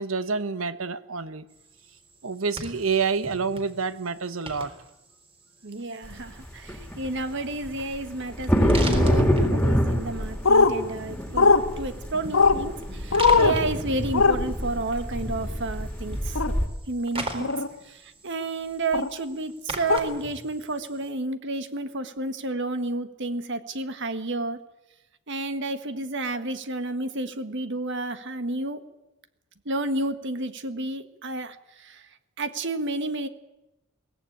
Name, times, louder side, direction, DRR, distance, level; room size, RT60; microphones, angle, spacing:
voice 1, 0.0-1.5 2.2-4.7, right 5 dB, 80° right, 13 dB, 1.1 m, -28 dB
sound 1, 1.5-21.1, right 2 dB, 30° right, 3.8 m, -42 dB
voice 2, 5.6-16.4 16.9-17.5 17.8-24.6 25.3-28.8 29.6-32.1 32.4-33.3, right 2 dB, 60° right, 10 dB, 1.7 m, -31 dB
sound 2, 6.0-6.1 6.4-16.7, equal, 5° left, 2.9 m, -26 dB
sound 3, 10.4-10.7 11.4-11.6 12.3-12.6 13.1-13.6 14.1-14.4 16.4-16.5 17.4-17.7 18.9-19.1 19.9-20.0, left 4 dB, 80° left, 1.7 m, -18 dB
22.5 x 17.5 x 8.9 m, 0.95 s
head